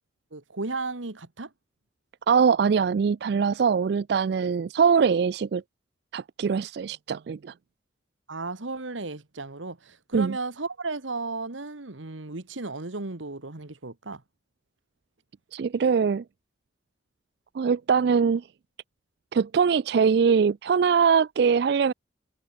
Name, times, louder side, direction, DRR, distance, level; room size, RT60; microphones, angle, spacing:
voice 1, 0.3-1.5 8.3-14.2, right 3 dB, 85° right, 1.7 m, -34 dB
voice 2, 2.3-5.6 6.1-7.5 10.1-10.4 15.5-16.2 17.5-18.5 19.3-21.9, right 6 dB, 55° right, 0.3 m, -22 dB
head